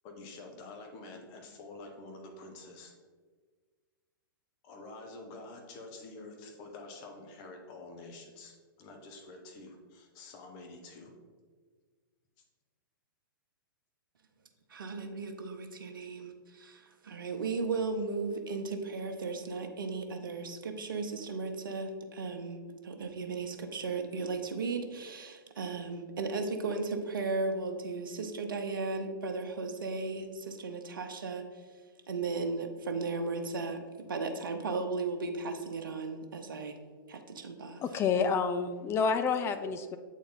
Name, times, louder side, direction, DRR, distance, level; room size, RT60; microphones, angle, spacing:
voice 1, 0.0-2.9 4.6-11.1, left 2 dB, 40° left, 2 dB, 1.2 m, -48 dB
voice 2, 14.7-31.4 32.1-33.8 34.1-36.7 37.1-37.8, right 3 dB, 70° right, 6 dB, 0.9 m, -35 dB
voice 3, 37.8-40.0, left 5 dB, 20° left, 9 dB, 0.4 m, -29 dB
8.2 x 4.2 x 3.9 m, 1.5 s
figure-of-eight pair, 110°, 12 cm